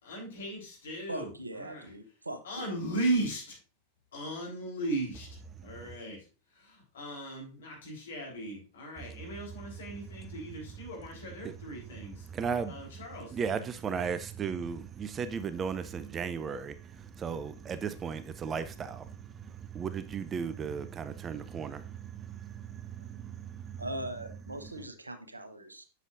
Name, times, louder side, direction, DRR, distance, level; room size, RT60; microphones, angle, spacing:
voice 1, 0.0-1.9 2.4-3.6 4.1-5.3 5.6-6.2 6.5-12.3 12.7-13.4, right 2 dB, 65° left, 3.5 m, -37 dB
voice 2, 1.1-2.7 23.8-25.9, right 1 dB, 80° right, 0.8 m, -40 dB
voice 3, 5.6-6.0 9.0-9.1 10.1-10.3 11.4-11.6 11.9-23.8 24.6-24.7, right 6 dB, 25° right, 0.5 m, -36 dB
8.2 x 7.1 x 2.5 m
figure-of-eight pair, 90°, 0 cm